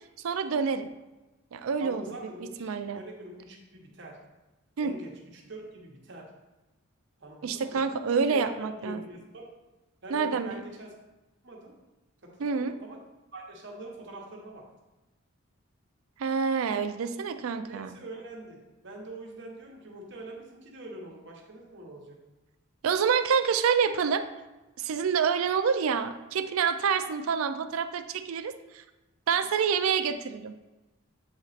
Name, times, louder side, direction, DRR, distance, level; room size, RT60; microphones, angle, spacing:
voice 1, 0.2-0.9 1.5-2.0 2.6-3.0 4.8-5.0 7.4-9.0 10.1-10.6 12.4-12.7 16.2-18.0 22.8-24.2 24.8-28.8 29.3-30.5, right 6 dB, 80° right, 9 dB, 0.4 m, -27 dB
voice 2, 1.8-4.2 4.8-6.3 7.2-9.5 10.0-11.0 11.4-11.8 12.2-13.0 13.3-14.7 17.7-22.2, right 1 dB, 55° right, 0 dB, 1.0 m, -44 dB
7.7 x 2.9 x 4.1 m, 1.1 s
head